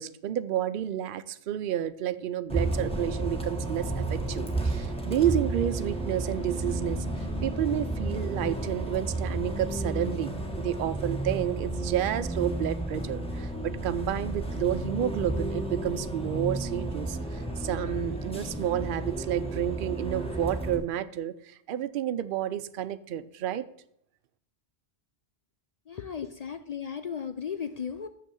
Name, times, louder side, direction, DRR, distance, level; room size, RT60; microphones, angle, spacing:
voice 1, 0.0-7.1 7.4-23.7, right 10 dB, 60° right, 13 dB, 0.7 m, -30 dB
Bus, 2.5-20.8, right 2 dB, 5° left, 1.3 m, -32 dB
voice 2, 25.9-28.1, left 7 dB, 50° left, 9 dB, 0.5 m, -35 dB
6.8 x 6.3 x 7.0 m, 0.70 s
omnidirectional pair, 1.1 m